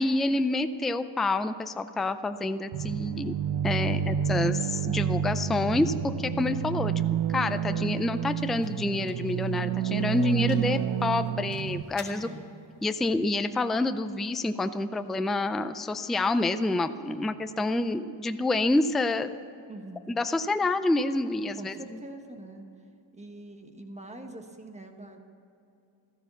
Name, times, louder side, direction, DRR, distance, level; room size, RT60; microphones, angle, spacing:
voice 1, 0.0-3.3 3.6-6.9 7.3-12.3 12.8-19.3 20.1-22.0, left 2 dB, ahead, 10 dB, 0.3 m, -28 dB
sound 1, 2.7-11.8, right 9 dB, 75° right, 0.7 m, -29 dB
voice 2, 3.9-4.3 12.1-12.5 17.1-17.3 19.7-20.1 21.6-22.6 23.1-25.2, right 1 dB, 15° right, 5 dB, 1.3 m, -44 dB
sound 2, 7.2-15.1, left 3 dB, 35° left, 2.3 m, -55 dB
15.0 x 13.5 x 7.0 m, 2.7 s
wide cardioid pair, 165°, 45 cm